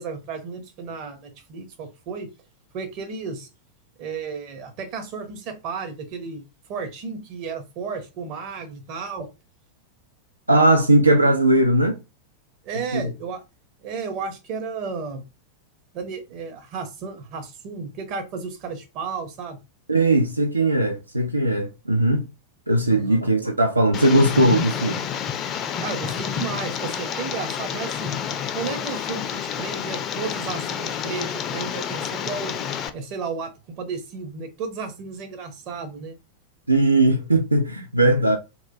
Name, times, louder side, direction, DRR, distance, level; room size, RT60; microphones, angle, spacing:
voice 1, 0.0-2.3 2.7-3.5 4.0-9.3 12.6-13.4 13.8-15.2 15.9-19.6 22.9-23.2 25.8-28.2 28.5-32.5 32.9-36.2 38.0-38.2, right 5 dB, 40° right, 0.8 m, -33 dB
voice 2, 10.5-12.0 12.9-13.1 19.9-22.3 22.7-25.1 36.7-38.4, right 1 dB, 85° right, 0.3 m, -19 dB
Tick, 23.9-32.9, left 8 dB, 30° left, 0.4 m, -29 dB
2.9 x 2.2 x 2.6 m
figure-of-eight pair, 90°, 0 cm